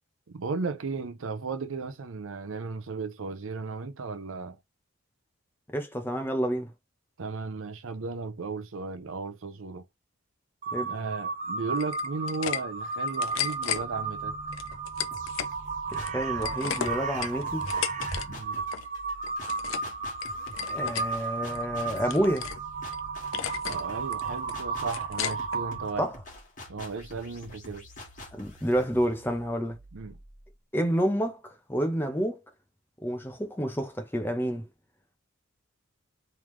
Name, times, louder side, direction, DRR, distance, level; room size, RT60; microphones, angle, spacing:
voice 1, 0.3-4.6 7.2-9.9 10.9-14.4 18.2-18.6 23.6-26.1 26.7-27.9 29.9-30.1, right 4 dB, 75° right, 0.6 m, -35 dB
voice 2, 5.7-6.7 10.7-10.9 15.9-17.7 20.7-22.5 26.0-26.1 28.3-29.8 30.7-31.4 31.7-32.4 33.0-34.7, equal, 10° left, 0.8 m, -29 dB
Crow, 10.6-26.1, right 4 dB, 35° right, 0.7 m, -34 dB
sound 1, 11.8-12.6 12.9-13.8 14.5-15.5 15.9-18.3 18.5-18.9 19.2-19.9 20.2-21.1 21.5-22.6 22.9-23.0 23.3-23.8 24.1-25.6, left 10 dB, 70° left, 0.5 m, -34 dB
sound 2, 15.1-16.3 16.8-30.5, left 1 dB, 40° left, 1.8 m, -47 dB
3.6 x 3.2 x 3.1 m
head